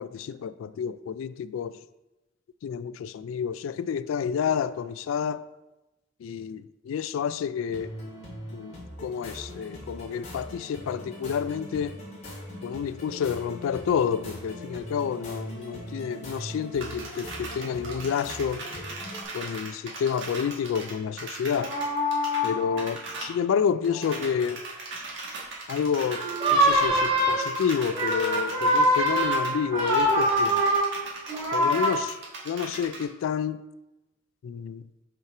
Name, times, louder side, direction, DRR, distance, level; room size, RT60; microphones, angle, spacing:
voice 1, 0.0-1.7 2.6-5.4 6.2-6.6 6.9-7.9 8.5-12.0 12.6-18.6 19.3-21.7 22.4-24.6 25.7-26.2 26.5-30.6 31.5-32.2 32.4-33.6 34.4-34.8, left 7 dB, 80° left, 0.3 m, -29 dB
sound 1, 7.7-19.2, equal, 35° left, 2.3 m, -41 dB
sound 2, 16.8-22.5 22.8-23.3 23.6-23.7 23.8-33.0, right 3 dB, 65° right, 1.6 m, -39 dB
sound 3, 21.5-22.8 23.9-24.2 26.1-31.9, equal, 30° right, 2.5 m, -24 dB
5.8 x 4.5 x 4.8 m
head